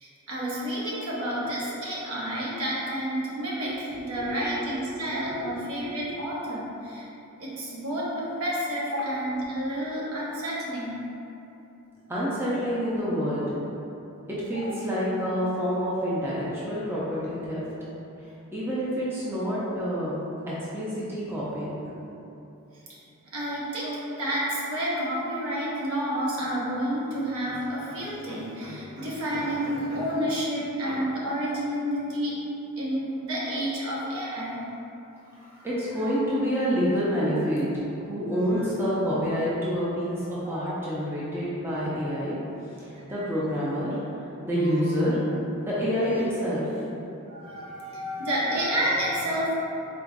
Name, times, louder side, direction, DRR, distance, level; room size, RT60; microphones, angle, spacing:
voice 1, 0.0-7.1 7.4-11.0 14.5-14.8 23.3-32.4 32.8-34.6 35.4-35.7 40.4-40.7 44.6-45.1 47.3-49.5, equal, 70° right, -6 dB, 0.8 m, -30 dB
voice 2, 4.2-4.5 4.9-5.5 12.1-13.4 14.3-17.6 18.5-20.2 20.5-21.8 35.6-37.7 38.0-42.4 42.8-45.2 45.6-46.7, equal, 10° right, -9 dB, 0.5 m, -28 dB
3.9 x 2.4 x 3.5 m, 2.9 s
head